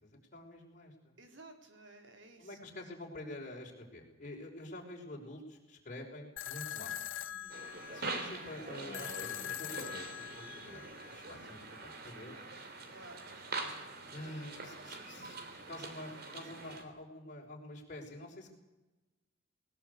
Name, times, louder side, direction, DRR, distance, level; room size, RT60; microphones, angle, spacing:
voice 1, 0.0-1.2 2.4-7.0 7.9-10.8 11.1-12.5 14.1-15.4 15.7-18.5, left 1 dB, 40° left, -1 dB, 5.8 m, -47 dB
voice 2, 1.2-2.6 7.2-7.5 12.9-13.3, right 2 dB, 70° right, 5 dB, 3.8 m, -55 dB
sound 1, 6.4-11.4, left 11 dB, 90° left, 1.2 m, -43 dB
sound 2, 7.5-16.8, right 3 dB, 50° right, 3.3 m, -44 dB
20.0 x 20.0 x 8.6 m, 1.0 s
head